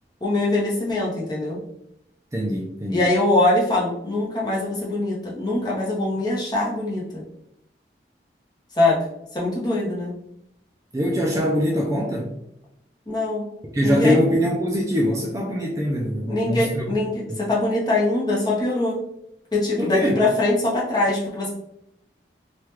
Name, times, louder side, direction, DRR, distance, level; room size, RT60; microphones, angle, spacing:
voice 1, 0.2-1.6 2.9-7.2 8.8-9.0 9.3-10.1 13.1-13.5 13.8-14.2 16.3-19.0 19.5-21.5, left 2 dB, 25° left, -5 dB, 0.7 m, -22 dB
voice 2, 2.3-3.0 10.9-12.3 13.7-16.8 19.8-20.2, equal, 20° right, -1 dB, 0.3 m, -23 dB
3.2 x 2.3 x 2.9 m, 0.80 s
head